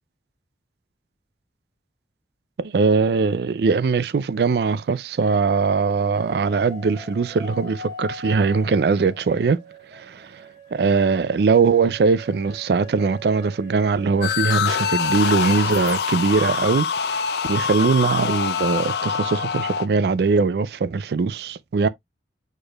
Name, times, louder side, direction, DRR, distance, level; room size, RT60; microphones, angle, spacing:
voice 1, 2.6-9.6 9.9-21.9, right 4 dB, 65° right, 0.4 m, -21 dB
sound 1, 4.3-5.0 5.8-15.8, equal, 40° right, 1.4 m, -41 dB
sound 2, 14.2-19.9, left 7 dB, 65° left, 0.4 m, -24 dB
4.8 x 4.5 x 2.3 m
head